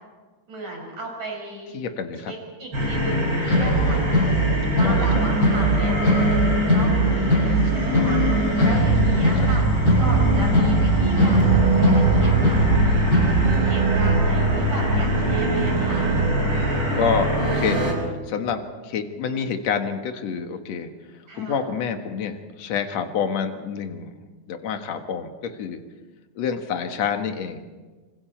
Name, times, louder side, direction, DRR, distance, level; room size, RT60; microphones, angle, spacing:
voice 1, 0.5-1.8 2.2-4.2 4.7-6.0 6.3-9.7 10.0-13.1 13.4-16.1 21.3-21.6, right 2 dB, 45° right, 0 dB, 7.5 m, -35 dB
voice 2, 1.7-2.3 3.6-4.1 4.6-5.2 8.6-9.3 15.2-15.6 17.0-20.9 21.4-25.8 26.4-27.7, left 6 dB, 55° left, 5 dB, 2.1 m, -28 dB
sound 1, 2.7-17.9, right 1 dB, 25° right, 6.1 m, -22 dB
sound 2, 3.4-13.5, right 1 dB, 30° left, 8.4 m, -21 dB
28.5 x 25.5 x 4.5 m, 1.3 s
omnidirectional pair, 4.7 m